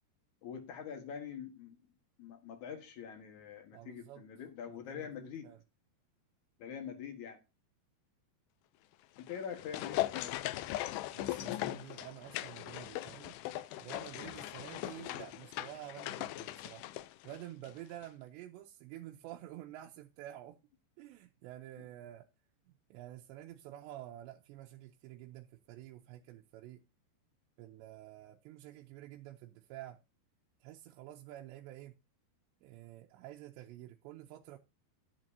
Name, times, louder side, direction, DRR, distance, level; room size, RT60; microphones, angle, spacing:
voice 1, 0.4-1.8 2.2-5.5 6.6-7.4 9.2-10.7 21.8-21.9, left 7 dB, 65° left, 2.1 m, -45 dB
voice 2, 3.7-4.2 4.7-5.6 11.1-13.4 13.8-16.9 17.2-20.6 21.0-22.3 22.7-26.8 27.6-30.0 30.6-32.0 32.6-34.6, right 13 dB, 80° right, 2.9 m, -49 dB
sound 1, 9.2-17.8 18.0-18.1, left 15 dB, 80° left, 2.4 m, -39 dB
10.5 x 10.5 x 2.7 m
omnidirectional pair, 5.2 m